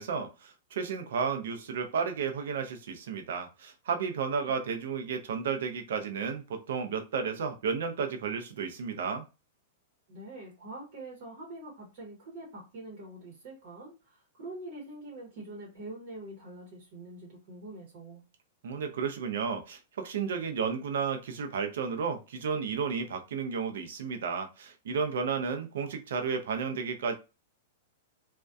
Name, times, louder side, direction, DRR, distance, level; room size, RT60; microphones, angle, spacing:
voice 1, 0.0-9.3 18.6-27.1, right 6 dB, 65° right, 0.5 m, -32 dB
voice 2, 10.1-18.2, right 2 dB, 40° right, 0.9 m, -45 dB
2.5 x 2.1 x 2.2 m
supercardioid pair, 170°, 0 cm